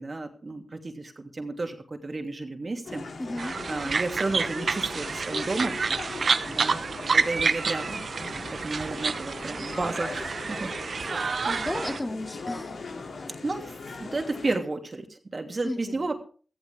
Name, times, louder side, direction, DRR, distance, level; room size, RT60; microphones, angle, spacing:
voice 1, 0.0-3.1 3.4-5.8 6.5-8.0 8.3-10.7 11.1-11.4 13.4-16.1, right 2 dB, 50° right, 4 dB, 2.8 m, -32 dB
sound 1, 2.8-14.6, left 3 dB, 85° left, 2.9 m, -40 dB
voice 2, 3.2-3.6 11.4-12.8 15.6-16.1, left 1 dB, 25° left, 4 dB, 2.6 m, -34 dB
sound 2, 3.4-12.0, right 5 dB, 75° right, 0.7 m, -29 dB
16.0 x 14.5 x 3.6 m, 0.40 s
cardioid pair, 40°, 0 cm